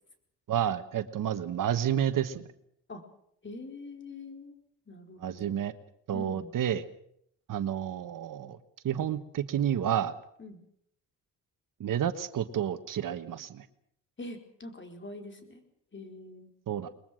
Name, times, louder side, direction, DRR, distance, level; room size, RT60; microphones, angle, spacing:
voice 1, 0.5-2.5 5.2-5.7 6.1-6.8 7.5-8.6 8.8-10.1 11.8-13.6 16.7-16.9, right 10 dB, 65° right, 11 dB, 1.4 m, -30 dB
voice 2, 3.4-4.5 4.9-5.6 6.1-6.5 10.4-10.6 14.2-15.6 15.9-16.5, left 2 dB, 30° left, 5 dB, 4.6 m, -44 dB
22.0 x 21.5 x 6.4 m, 0.70 s
supercardioid pair, 65°, 36 cm